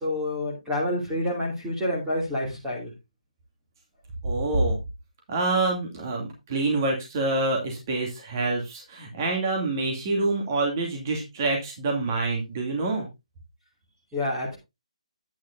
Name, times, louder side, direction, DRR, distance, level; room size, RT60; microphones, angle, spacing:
voice 1, 0.0-2.9 14.1-14.6, left 1 dB, 10° right, -4 dB, 2.7 m, -28 dB
voice 2, 4.2-4.8 5.3-13.1, right 2 dB, 30° right, 1 dB, 2.6 m, -26 dB
9.9 x 9.8 x 2.6 m, 0.23 s
hypercardioid pair, 165°, 4 cm